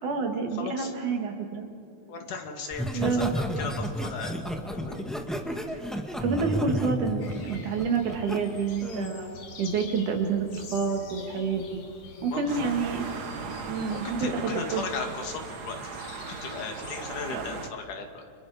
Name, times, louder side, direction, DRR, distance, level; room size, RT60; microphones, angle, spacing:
voice 1, 0.0-1.6 2.9-3.4 5.6-5.7 6.2-9.3 9.6-11.8 12.2-13.1 13.6-14.8 17.3-17.4, right 5 dB, 75° right, 3 dB, 3.8 m, -28 dB
voice 2, 0.6-0.9 2.1-4.4 4.7-5.1 12.3-12.7 13.9-16.0 16.4-18.2, left 4 dB, 90° left, 3 dB, 3.9 m, -36 dB
Laughter, 2.7-8.4 8.8-9.1, equal, ahead, 1.2 m, -32 dB
sound 1, 7.2-17.0, left 4 dB, 70° left, 3.7 m, -47 dB
sound 2, 12.5-17.7, right 5 dB, 60° right, 1.0 m, -38 dB
30.0 x 27.5 x 5.1 m, 2.5 s
omnidirectional pair, 3.5 m